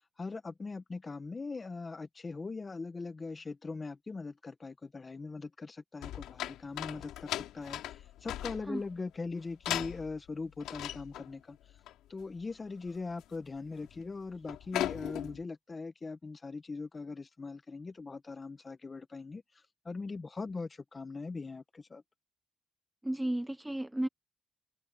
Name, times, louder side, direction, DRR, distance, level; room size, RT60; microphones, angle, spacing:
voice 1, 0.2-11.6 12.1-22.0, left 3 dB, 30° left, 1.6 m, -41 dB
sound 1, 6.0-8.9 9.6-10.3 10.6-11.3 11.7-11.9 12.2-12.4 12.8-13.2 13.6-14.0 14.3-15.4, left 13 dB, 90° left, 3.8 m, -38 dB
voice 2, 23.0-24.1, right 1 dB, 10° right, 1.1 m, -33 dB
open air
cardioid pair, 90°, 0 cm